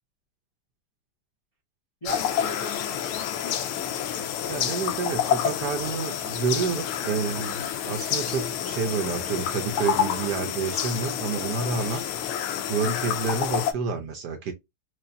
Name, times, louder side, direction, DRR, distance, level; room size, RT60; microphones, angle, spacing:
voice 1, 2.0-4.4, equal, 40° left, 0.5 m, -40 dB
sound 1, 2.1-13.7, left 9 dB, 85° left, 1.5 m, -29 dB
voice 2, 4.5-12.0 12.7-14.5, right 5 dB, 65° right, 1.1 m, -29 dB
4.8 x 2.5 x 2.6 m
omnidirectional pair, 2.3 m